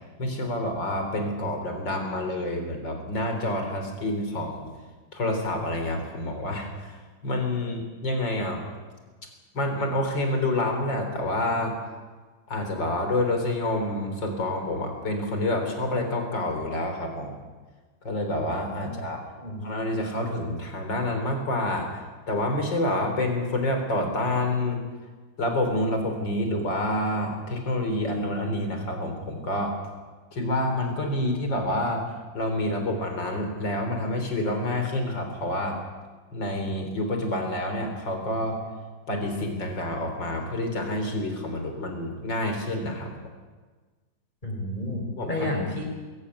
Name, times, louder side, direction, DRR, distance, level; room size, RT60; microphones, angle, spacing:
voice 1, 0.2-4.7 5.1-7.0 7.2-8.6 9.5-11.8 12.5-17.4 18.0-19.2 19.6-24.8 25.4-29.8 30.3-35.8 36.3-38.6 39.1-43.1 45.2-45.5, left 1 dB, 75° left, 4 dB, 4.6 m, -28 dB
voice 2, 44.4-45.8, left 1 dB, 25° left, 0 dB, 5.3 m, -30 dB
22.5 x 14.5 x 9.8 m, 1.4 s
omnidirectional pair, 2.0 m